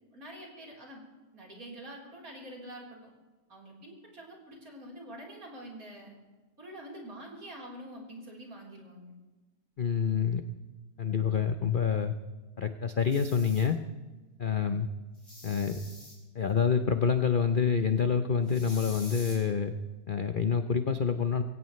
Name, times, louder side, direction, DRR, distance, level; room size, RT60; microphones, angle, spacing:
voice 1, 0.1-1.1 1.3-3.1 3.5-6.2 6.6-9.1, right 1 dB, 55° right, -2 dB, 4.4 m, -46 dB
voice 2, 9.8-10.4 11.0-12.1 12.6-13.8 14.4-14.9 15.4-15.8 16.3-19.7 20.1-21.4, left 6 dB, 55° left, 8 dB, 0.6 m, -27 dB
sound 1, 13.0-13.7 15.1-16.1 18.5-19.4, equal, 15° left, 6.9 m, -47 dB
24.0 x 16.5 x 3.2 m, 1.2 s
omnidirectional pair, 1.8 m